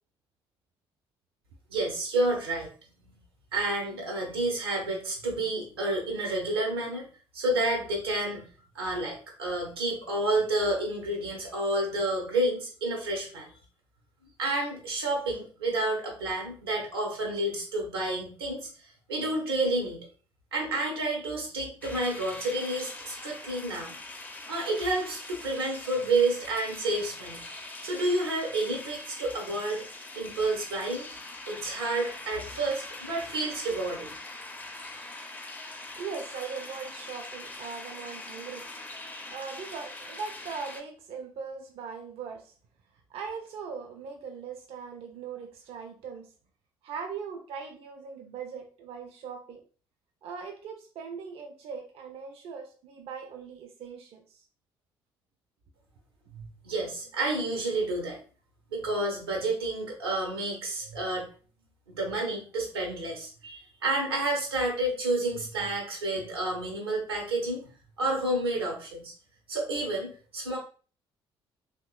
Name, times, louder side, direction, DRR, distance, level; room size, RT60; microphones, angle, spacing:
voice 1, 1.7-2.7 3.0-3.2 3.5-7.1 7.3-8.4 8.7-13.5 14.4-18.7 19.1-20.1 20.5-23.9 24.5-27.4 27.8-29.8 30.1-34.1 56.3-58.2 58.7-61.2 61.9-67.6 68.0-69.1 69.5-70.6, right 2 dB, 80° right, 0 dB, 0.6 m, -30 dB
sound 1, 21.8-40.8, left 2 dB, 15° left, 0.4 m, -43 dB
voice 2, 36.0-38.7 39.3-42.5 43.1-46.3 46.8-49.6 50.2-54.4, right 5 dB, 50° right, 4 dB, 0.4 m, -40 dB
2.9 x 2.1 x 2.2 m, 0.40 s
figure-of-eight pair, 45°, 13 cm